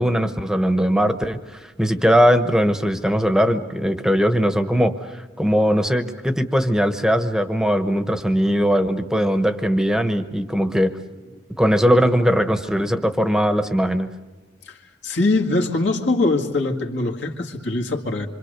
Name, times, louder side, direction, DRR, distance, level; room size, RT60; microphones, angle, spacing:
voice 1, 0.0-10.9 11.6-14.1, equal, 5° right, 9 dB, 1.0 m, -20 dB
voice 2, 15.0-18.3, left 2 dB, 65° left, 0 dB, 2.1 m, -22 dB
26.5 x 25.0 x 6.7 m, 1.2 s
head